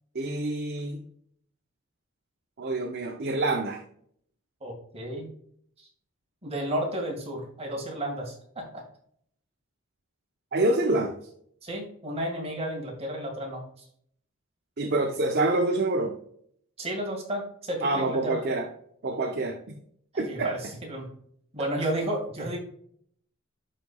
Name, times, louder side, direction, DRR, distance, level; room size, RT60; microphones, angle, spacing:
voice 1, 0.1-1.0 2.6-3.8 10.5-11.1 14.8-16.1 17.8-18.7 19.0-19.8 20.2-20.5, right 2 dB, 50° right, 3 dB, 0.7 m, -26 dB
voice 2, 4.6-5.3 5.8-5.9 6.4-8.8 11.6-13.6 16.8-18.4 20.1-21.1 21.5-22.6, right 1 dB, 30° right, -1 dB, 1.9 m, -32 dB
11.5 x 4.2 x 2.3 m, 0.64 s
head